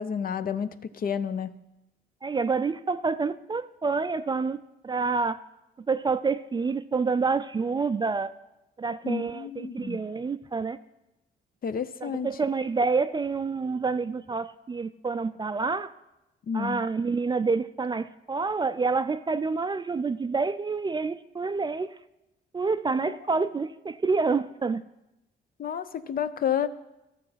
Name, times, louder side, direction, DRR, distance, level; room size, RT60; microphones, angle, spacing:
voice 1, 0.0-1.5 9.0-10.0 11.6-12.3 16.5-16.8 23.0-23.2 25.6-26.7, left 7 dB, 50° left, 13 dB, 0.6 m, -30 dB
voice 2, 2.2-5.4 5.9-8.3 8.8-10.8 12.0-15.9 16.5-21.9 22.5-24.8, right 4 dB, 20° right, 13 dB, 0.4 m, -28 dB
13.0 x 6.6 x 5.7 m, 0.95 s
cardioid pair, 90°, 20 cm